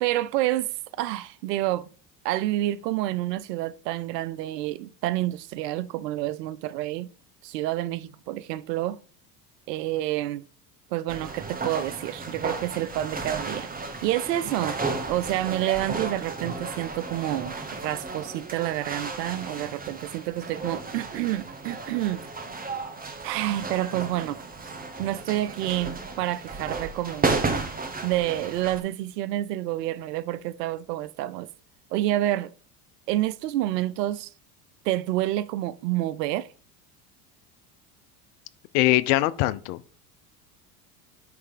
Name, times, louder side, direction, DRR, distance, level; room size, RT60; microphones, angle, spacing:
voice 1, 0.0-1.9 2.2-7.1 7.4-9.0 9.7-10.5 10.9-14.8 15.1-22.3 23.2-24.4 25.0-27.3 28.0-31.5 31.9-32.5 33.1-34.3 34.8-36.5, right 15 dB, 80° right, 0.7 m, -28 dB
sound 1, 11.1-28.8, right 3 dB, 20° right, 1.3 m, -33 dB
voice 2, 38.7-39.9, left 17 dB, 65° left, 0.7 m, -22 dB
9.6 x 3.3 x 4.9 m
hypercardioid pair, 85°, 48 cm